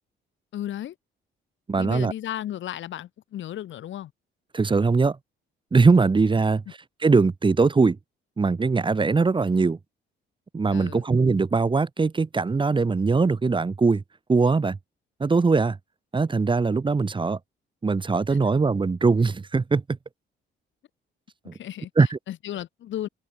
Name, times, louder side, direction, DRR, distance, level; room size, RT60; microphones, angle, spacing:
voice 1, 0.5-0.9 1.8-4.1 10.7-11.0 18.3-18.4 21.6-21.9 22.3-23.1, left 12 dB, 70° left, 1.9 m, -34 dB
voice 2, 1.7-2.1 4.5-5.2 5.7-6.6 7.0-8.0 8.4-9.8 10.5-14.0 14.3-14.8 15.2-15.8 16.1-17.4 17.8-19.8 21.5-21.6 22.0-22.2, right 4 dB, 25° right, 1.2 m, -21 dB
cardioid pair, 90°, 20 cm